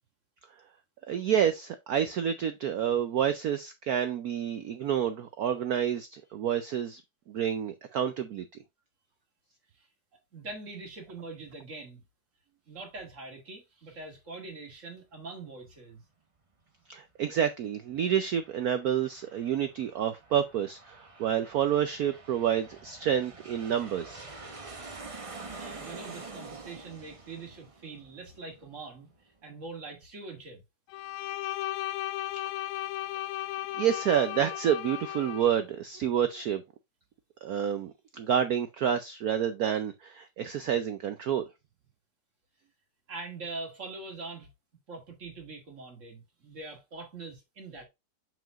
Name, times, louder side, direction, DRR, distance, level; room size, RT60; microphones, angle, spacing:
voice 1, 1.1-7.0 7.3-8.5 16.9-24.3 33.8-36.6 37.4-41.4, right 9 dB, 85° right, 0.8 m, -29 dB
voice 2, 10.3-12.0 12.7-16.0 25.6-29.1 29.4-30.6 43.1-44.5 44.9-47.8, right 3 dB, 35° right, 2.1 m, -43 dB
Aircraft, 17.9-29.1, right 3 dB, 55° right, 0.3 m, -47 dB
Bowed string instrument, 30.9-35.6, left 14 dB, 85° left, 1.4 m, -35 dB
6.9 x 6.1 x 2.4 m
omnidirectional pair, 2.3 m